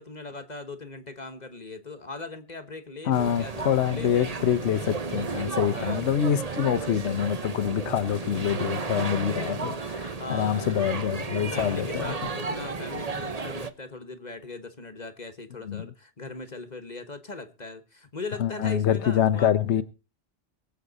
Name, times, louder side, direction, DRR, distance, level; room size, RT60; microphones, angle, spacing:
voice 1, 0.0-4.1 5.7-6.0 10.2-10.9 11.3-19.5, left 3 dB, 35° left, 1.4 m, -39 dB
voice 2, 3.1-12.1 15.7-15.9 18.4-19.8, left 9 dB, 65° left, 1.1 m, -26 dB
sound 1, 3.1-13.7, right 4 dB, 35° right, 1.1 m, -33 dB
23.0 x 8.1 x 4.1 m
omnidirectional pair, 1.3 m